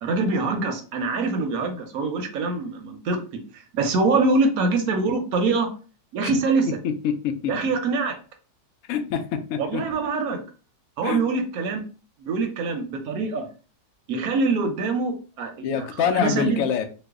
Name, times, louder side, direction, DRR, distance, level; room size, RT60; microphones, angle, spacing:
voice 1, 0.0-5.7 6.1-6.7 7.5-8.2 9.5-10.4 11.0-11.8 12.2-13.5 14.1-15.9 16.1-16.6, right 3 dB, 65° right, 5 dB, 0.9 m, -24 dB
voice 2, 7.0-7.5 8.9-9.8 11.0-11.2 15.6-16.9, left 7 dB, 85° left, 6 dB, 0.7 m, -25 dB
3.1 x 2.1 x 3.4 m, 0.36 s
omnidirectional pair, 2.0 m